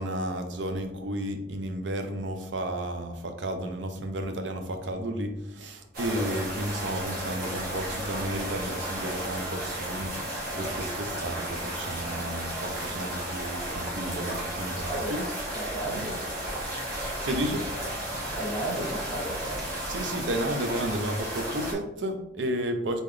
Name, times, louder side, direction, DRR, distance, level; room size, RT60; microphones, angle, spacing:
voice 1, 0.0-15.3 17.2-17.7 19.9-23.0, right 1 dB, 90° right, 0.6 m, -32 dB
sound 1, 5.9-21.7, right 1 dB, 55° right, 1.4 m, -33 dB
voice 2, 14.9-15.2 15.5-16.3 18.3-19.8, right 1 dB, ahead, 1.6 m, -34 dB
3.9 x 3.8 x 3.2 m
head